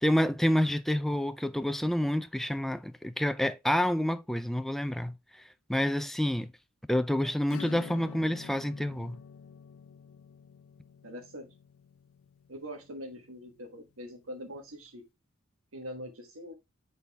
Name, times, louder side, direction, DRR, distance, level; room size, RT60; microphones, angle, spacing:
voice 1, 0.0-5.2 5.7-6.5 6.9-9.2, left 1 dB, ahead, 0.3 m, -28 dB
Acoustic guitar / Strum, 7.5-13.7, left 6 dB, 85° left, 0.4 m, -48 dB
voice 2, 11.0-11.5 12.5-15.0 15.7-16.5, equal, 75° right, 1.4 m, -43 dB
8.0 x 4.1 x 3.4 m
head